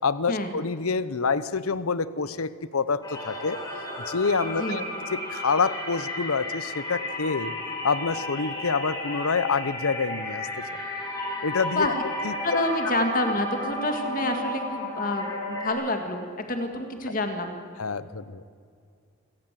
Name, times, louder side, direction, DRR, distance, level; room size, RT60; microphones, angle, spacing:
voice 1, 0.0-3.6 4.1-4.8 5.1-7.5 7.8-10.5 11.4-12.3 12.8-12.9 17.8-18.4, left 4 dB, 85° left, 16 dB, 0.9 m, -27 dB
sound 1, 3.0-15.7, left 1 dB, 20° left, 4.6 m, -33 dB
voice 2, 12.4-17.6, left 1 dB, 40° left, 5 dB, 2.0 m, -28 dB
27.0 x 17.0 x 7.6 m, 2.3 s
head